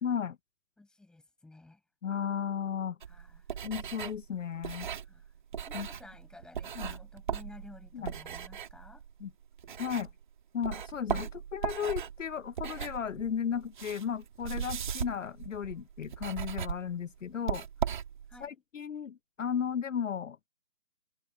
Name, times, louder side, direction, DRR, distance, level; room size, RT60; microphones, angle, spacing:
voice 1, 0.0-0.4 2.0-3.0 3.6-4.9 5.7-5.9 6.8-7.0 7.9-8.1 9.2-9.3 9.8-10.1 10.5-17.6 18.4-20.4, left 8 dB, 60° left, 0.6 m, -35 dB
voice 2, 0.8-1.8 3.1-3.6 5.0-5.3 5.7-9.0 18.3-18.6, left 2 dB, ahead, 5.0 m, -54 dB
sound 1, 3.0-10.3 10.6-18.5, right 8 dB, 35° right, 2.4 m, -38 dB
hypercardioid pair, 165°, 42 cm